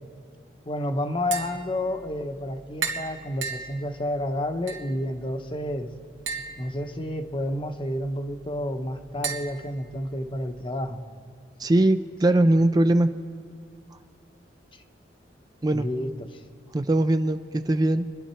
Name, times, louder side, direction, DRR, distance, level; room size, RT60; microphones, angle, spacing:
voice 1, 0.6-5.9 6.6-11.0 15.7-16.4, left 1 dB, 30° left, 7 dB, 0.9 m, -30 dB
Tap, 1.1-10.6, right 5 dB, 85° right, 1.9 m, -38 dB
voice 2, 11.6-13.1 15.6-15.9 16.7-18.1, right 1 dB, 20° right, 9 dB, 0.4 m, -21 dB
27.5 x 11.5 x 4.4 m, 2.2 s
head